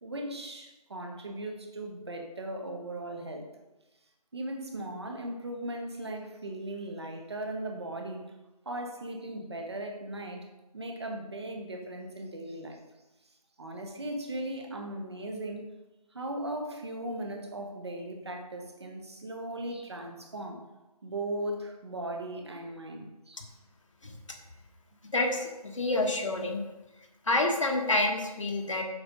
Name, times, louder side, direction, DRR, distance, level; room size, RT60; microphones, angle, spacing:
voice 1, 0.0-3.4 4.3-8.2 8.6-10.5 10.7-12.8 13.6-15.6 16.1-20.6 21.0-23.5, right 1 dB, 40° right, 3 dB, 1.3 m, -38 dB
voice 2, 24.0-24.4 25.1-26.6 27.3-28.8, left 2 dB, 50° left, 3 dB, 1.3 m, -28 dB
7.9 x 5.0 x 5.2 m, 1.0 s
figure-of-eight pair, 170°, 20 cm